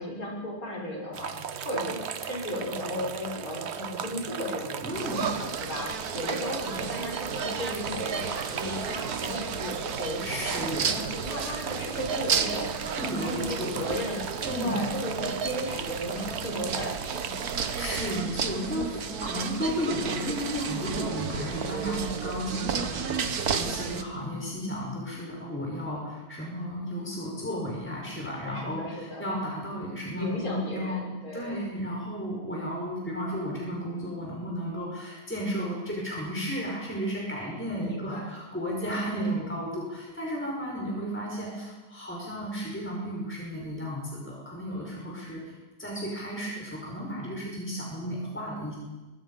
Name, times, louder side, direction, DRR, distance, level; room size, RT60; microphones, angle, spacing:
voice 1, 0.0-10.6 10.9-12.7 13.2-17.3 28.4-29.3 30.1-31.6 37.8-38.3 39.1-39.6, left 1 dB, 60° left, -3 dB, 6.9 m, -35 dB
sound 1, 1.1-18.2, right 7 dB, 50° right, 1.0 m, -37 dB
voice 2, 4.8-5.3 10.2-11.0 13.0-13.9 14.4-14.8 17.6-31.0 31.3-48.7, equal, 5° left, -3 dB, 5.2 m, -33 dB
sound 2, 4.9-24.0, right 6 dB, 65° right, 1.7 m, -33 dB
24.0 x 22.5 x 5.6 m, 1.2 s
omnidirectional pair, 1.7 m